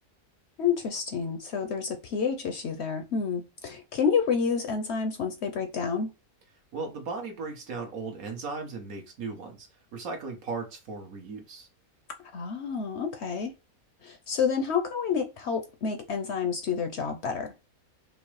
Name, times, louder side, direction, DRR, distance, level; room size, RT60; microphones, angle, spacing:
voice 1, 0.6-6.1 12.3-13.5 14.0-17.5, left 6 dB, 65° left, 0.7 m, -29 dB
voice 2, 6.7-11.7, right 4 dB, 75° right, 1.5 m, -37 dB
5.1 x 2.0 x 3.0 m
omnidirectional pair, 1.5 m